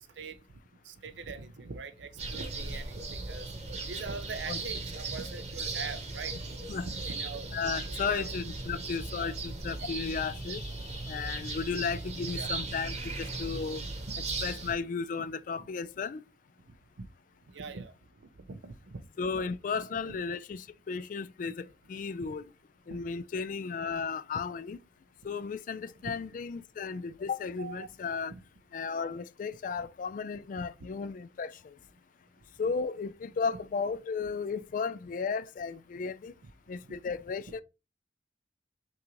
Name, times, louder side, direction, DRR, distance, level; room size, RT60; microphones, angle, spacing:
voice 1, 0.8-3.5 3.8-6.4 6.7-7.5 8.0-8.4 9.2-9.3 9.8-9.9 12.3-12.7 14.1-14.2 17.0-17.1 17.5-17.9 18.4-19.1 19.8-20.2 22.9-23.0 26.0-26.1 27.6-27.9 28.3-28.4 29.8-29.9 36.4-36.5, right 4 dB, 85° right, 0.6 m, -42 dB
sound 1, 2.2-14.7, right 3 dB, 40° right, 1.0 m, -37 dB
voice 2, 7.5-13.9 14.4-16.2 19.2-22.5 22.9-24.8 25.2-28.3 28.7-31.7 32.6-36.3 36.7-37.6, left 5 dB, 45° left, 0.3 m, -34 dB
5.7 x 2.5 x 3.1 m
head